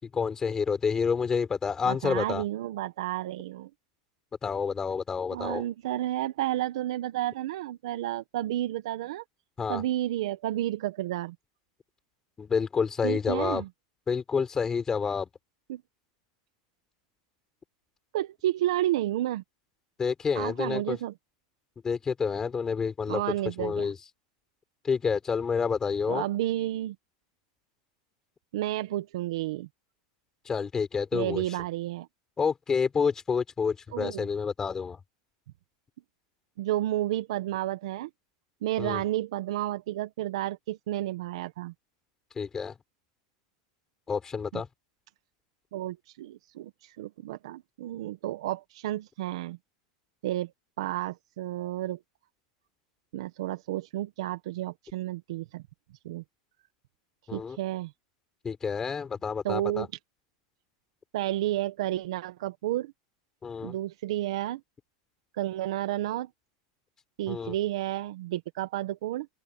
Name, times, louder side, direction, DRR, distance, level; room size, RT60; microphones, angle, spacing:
voice 1, 0.0-2.4 4.4-5.6 9.6-9.8 12.4-13.6 14.1-15.3 20.0-21.0 21.8-23.2 23.6-24.0 24.8-26.2 30.4-31.4 32.4-35.0 38.8-39.0 42.3-42.7 44.1-44.7 57.3-57.6 58.4-59.9 63.4-63.8 67.3-67.5, left 6 dB, 20° left, 4.9 m, -29 dB
voice 2, 1.9-3.7 5.3-9.2 9.7-11.3 13.0-13.7 15.7-15.8 18.1-19.4 20.3-21.1 23.1-23.9 26.1-26.9 28.5-29.7 31.1-32.1 33.9-34.3 36.6-38.1 38.6-41.7 44.5-44.6 45.7-49.6 50.2-50.5 50.8-52.0 53.1-55.6 56.0-56.2 57.3-57.9 59.4-59.9 61.1-62.9 63.6-64.6 65.4-66.3 67.2-69.3, right 14 dB, 75° right, 1.5 m, -31 dB
open air
supercardioid pair, 135°, 3 cm